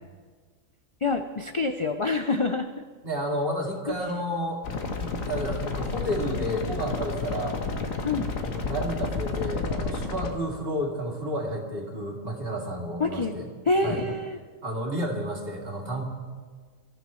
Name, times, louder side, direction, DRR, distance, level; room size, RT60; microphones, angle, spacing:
voice 1, 1.0-2.7 3.9-4.0 8.0-8.3 13.0-13.3 13.7-14.4, left 3 dB, 45° left, 5 dB, 0.4 m, -26 dB
voice 2, 3.0-4.6 5.0-7.6 8.4-13.5 13.8-14.0 14.6-16.0, equal, 45° right, -1 dB, 2.6 m, -31 dB
sound 1, 4.6-10.3, left 4 dB, 75° left, 1.6 m, -31 dB
24.0 x 13.5 x 3.1 m, 1.5 s
omnidirectional pair, 1.4 m